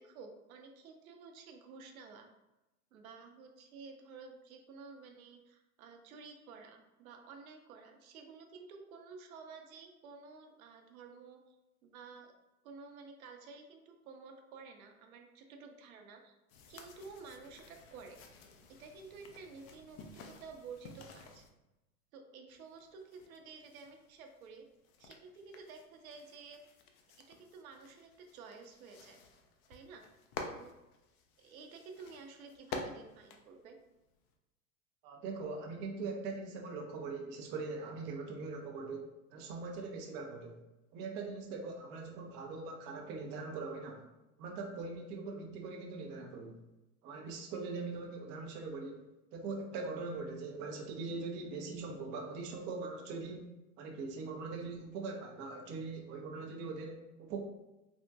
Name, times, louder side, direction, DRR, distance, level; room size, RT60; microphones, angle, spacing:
voice 1, 0.0-2.3 2.9-11.6 11.8-12.3 12.6-16.4 16.7-18.2 18.8-21.5 22.1-24.7 25.0-26.6 27.3-29.2 29.7-30.0 30.4-30.7 31.4-33.8, right 4 dB, 65° right, 4 dB, 0.7 m, -52 dB
sound 1, 16.5-21.5 22.5-34.3, left 4 dB, 45° left, 0.5 m, -51 dB
voice 2, 35.0-40.6 40.9-44.0 44.4-46.6 47.0-49.0 49.3-53.5 53.8-57.4, right 4 dB, 25° right, 1 dB, 0.4 m, -41 dB
3.4 x 2.1 x 2.6 m, 0.98 s
hypercardioid pair, 95°, 45 cm